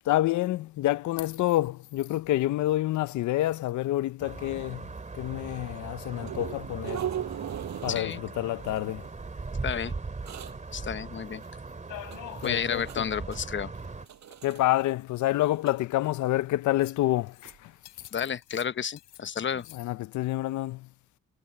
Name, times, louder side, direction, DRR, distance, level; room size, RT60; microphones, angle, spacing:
voice 1, 0.1-4.9 5.1-7.0 7.8-9.0 12.4-13.1 14.4-17.7 19.7-20.9, left 15 dB, 70° left, 0.6 m, -28 dB
sound 1, 4.2-14.1, right 3 dB, 25° right, 2.6 m, -39 dB
sound 2, 6.2-8.3 8.6-9.1 9.9-10.0 10.2-10.6 11.4-11.5 12.0-13.0 13.3-13.6 14.0-14.6 14.9-15.0 15.4-15.8 17.5-17.6 18.0-18.1, right 10 dB, 65° right, 5.1 m, -38 dB
voice 2, 7.9-8.2 9.6-9.9 10.7-11.4 12.4-13.7 18.1-19.7, left 7 dB, 40° left, 0.9 m, -31 dB
sound 3, 11.9-12.5 12.9-13.0 13.2-13.3 14.4-14.5 15.2-15.9 16.8-17.0 17.3-17.6 17.9-18.2 18.4-19.2 19.5-19.8, left 16 dB, 90° left, 3.4 m, -46 dB
cardioid pair, 90°, 30 cm